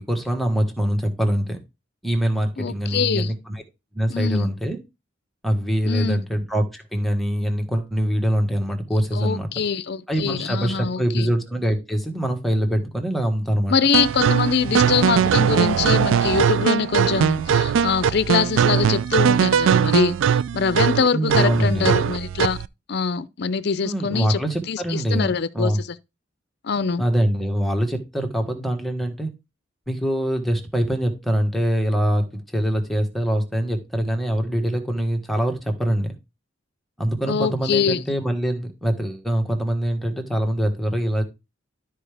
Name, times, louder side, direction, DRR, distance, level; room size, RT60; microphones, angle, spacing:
voice 1, 0.0-1.6 2.0-3.6 3.9-4.8 5.4-9.5 10.1-13.7 14.7-14.9 21.1-21.9 23.8-25.8 27.0-29.3 29.9-36.1 37.0-41.2, equal, ahead, 1.5 m, -23 dB
voice 2, 2.6-3.3 4.1-4.5 5.8-6.2 9.1-11.3 13.7-22.6 22.9-24.4 24.7-25.7 26.6-27.0 37.3-38.0, left 5 dB, 60° left, 0.5 m, -23 dB
sound 1, 13.9-22.7, right 7 dB, 85° right, 0.3 m, -20 dB
12.0 x 4.7 x 3.4 m
head